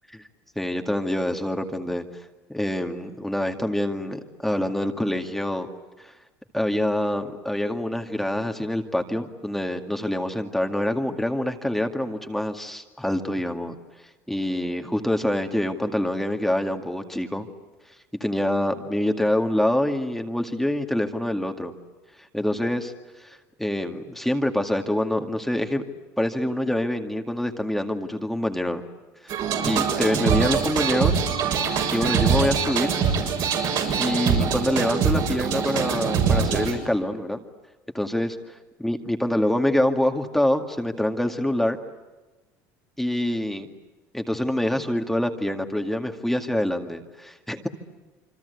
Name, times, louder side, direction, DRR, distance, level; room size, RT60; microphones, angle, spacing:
voice 1, 0.6-2.0 2.5-5.7 6.0-6.1 6.5-13.7 14.3-17.5 18.2-21.7 22.3-25.8 26.2-28.8 29.2-31.2 31.9-33.0 34.0-37.4 37.9-38.4 38.8-41.8 43.0-43.7 44.1-47.7, left 1 dB, 5° left, 4 dB, 2.1 m, -26 dB
sound 1, 29.3-36.7, right 6 dB, 60° right, 6.9 m, -23 dB
27.5 x 25.0 x 8.2 m, 1.2 s
supercardioid pair, 95°, 8 cm